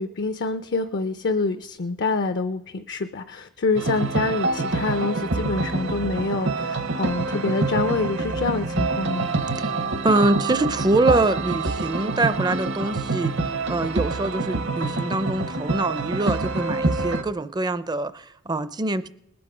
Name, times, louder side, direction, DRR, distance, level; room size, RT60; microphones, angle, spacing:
voice 1, 0.0-9.5, left 3 dB, 50° left, 9 dB, 0.5 m, -26 dB
sound 1, 3.8-17.2, right 3 dB, 55° right, 0.8 m, -26 dB
voice 2, 10.0-13.3 13.7-19.1, right 2 dB, 20° right, 14 dB, 0.5 m, -24 dB
20.0 x 8.6 x 4.9 m, 0.84 s
head